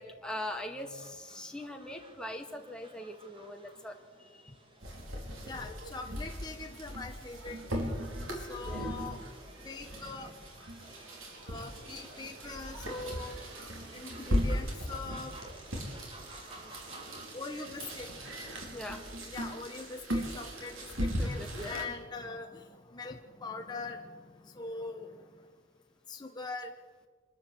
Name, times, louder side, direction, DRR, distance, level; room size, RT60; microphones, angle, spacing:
voice 1, 0.0-4.0 4.3-4.4 8.6-9.0 18.7-19.0 21.2-21.9, left 1 dB, 5° left, 2 dB, 1.9 m, -41 dB
sound 1, 0.8-19.1, right 1 dB, 25° right, 2.5 m, -54 dB
sound 2, 4.8-21.8, equal, 85° right, 4.9 m, -38 dB
voice 2, 5.5-7.9 8.5-9.2 9.6-10.3 11.4-13.3 13.9-15.3 17.3-18.1 19.0-22.6 22.9-24.1 24.5-25.1 26.1-26.7, left 3 dB, 20° left, 3 dB, 1.1 m, -42 dB
25.0 x 12.5 x 8.3 m, 1.5 s
head